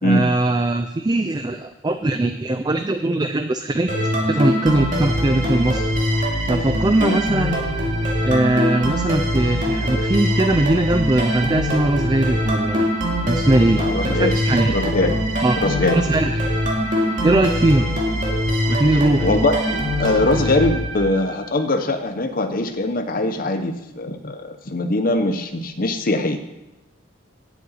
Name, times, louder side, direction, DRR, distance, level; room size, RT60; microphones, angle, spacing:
voice 1, 0.0-3.9 4.3-5.8 6.5-7.6 8.2-12.9 13.2-14.7 15.4-15.6 15.9-16.3 17.2-17.9 18.7-19.3, right 2 dB, 20° right, 8 dB, 0.4 m, -20 dB
sound 1, 3.9-21.4, equal, 40° right, 2.4 m, -22 dB
voice 2, 13.8-14.4 14.7-15.2 15.6-16.0 19.2-26.4, left 2 dB, 45° left, 7 dB, 0.8 m, -22 dB
8.3 x 7.9 x 8.8 m, 0.96 s
head